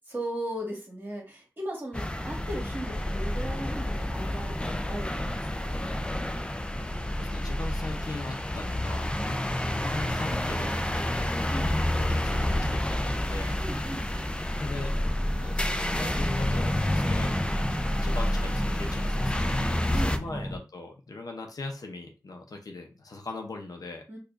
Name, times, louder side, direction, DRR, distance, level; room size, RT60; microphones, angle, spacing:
voice 1, 0.0-5.8 9.1-9.6 11.5-11.7 13.6-14.2 19.9-20.5 24.1-24.2, right 1 dB, 30° right, -2 dB, 1.7 m, -37 dB
sound 1, 1.9-20.2, left 1 dB, 15° left, 0.4 m, -29 dB
voice 2, 6.6-9.1 9.6-13.6 14.6-15.0 15.3-17.6 18.0-24.0, left 2 dB, 60° left, 3 dB, 0.7 m, -40 dB
sound 2, 15.1-20.6, equal, 5° right, 0.8 m, -36 dB
4.7 x 2.4 x 2.5 m, 0.31 s
wide cardioid pair, 100°, 7 cm